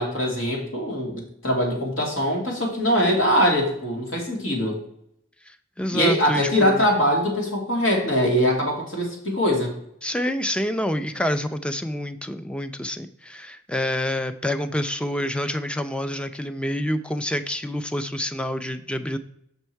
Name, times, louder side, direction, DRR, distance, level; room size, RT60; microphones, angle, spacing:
voice 1, 0.0-4.8 5.9-9.7, equal, 70° left, 0 dB, 2.5 m, -22 dB
voice 2, 5.5-6.9 10.0-19.2, left 1 dB, 5° left, 9 dB, 0.4 m, -27 dB
7.0 x 5.5 x 4.5 m, 0.73 s
head